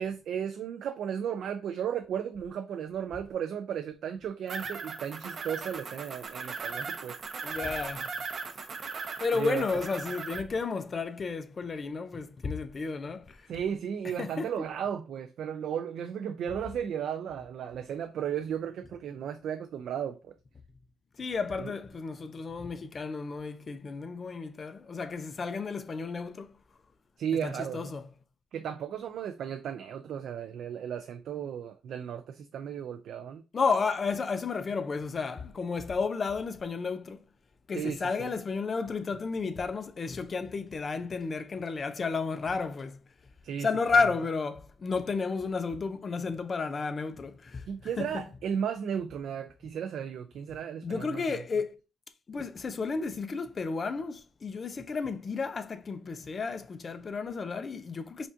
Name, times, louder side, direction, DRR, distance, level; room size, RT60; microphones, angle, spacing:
voice 1, 0.0-7.2 9.3-9.7 13.5-20.3 21.6-21.7 27.2-27.9 28.5-33.4 37.7-38.3 43.4-43.7 47.7-51.4, right 8 dB, 70° right, 0.3 m, -35 dB
sound 1, 4.5-10.4, right 4 dB, 45° right, 0.7 m, -38 dB
voice 2, 7.4-8.1 9.2-13.4 14.2-14.5 21.2-26.5 27.4-28.0 33.5-37.2 37.7-43.0 43.6-47.7 48.0-48.3 50.8-51.8 52.3-58.3, left 4 dB, 40° left, 0.5 m, -32 dB
5.1 x 2.4 x 2.6 m
cardioid pair, 90°, 0 cm